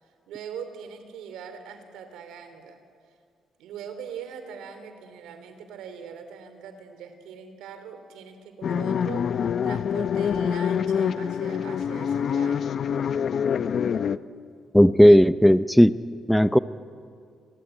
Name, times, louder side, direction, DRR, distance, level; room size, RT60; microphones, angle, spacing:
voice 1, 0.0-2.8 3.6-12.7, right 7 dB, 90° right, 9 dB, 3.1 m, -41 dB
sound 1, 8.6-14.2, left 7 dB, 55° left, 0.7 m, -25 dB
voice 2, 14.7-15.9 16.3-16.6, equal, ahead, 14 dB, 0.6 m, -15 dB
28.5 x 19.5 x 9.0 m, 2.3 s
cardioid pair, 90°, 0 cm